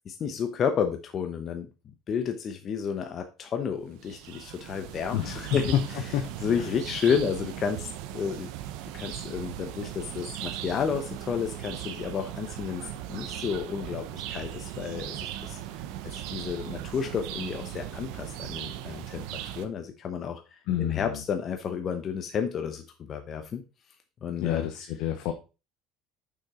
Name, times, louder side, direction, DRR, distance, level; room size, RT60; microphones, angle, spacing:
voice 1, 0.1-1.7 2.1-5.7 6.4-8.5 8.9-15.6 16.0-22.8 23.1-23.6 24.2-24.7, left 7 dB, 35° left, 6 dB, 0.9 m, -31 dB
sound 1, 3.9-19.7, right 12 dB, 75° right, 0.9 m, -38 dB
voice 2, 5.1-5.5 6.1-6.7 20.7-21.2 24.4-25.3, left 11 dB, 70° left, 5 dB, 1.0 m, -30 dB
6.3 x 6.1 x 4.3 m, 0.31 s
cardioid pair, 125°, 0 cm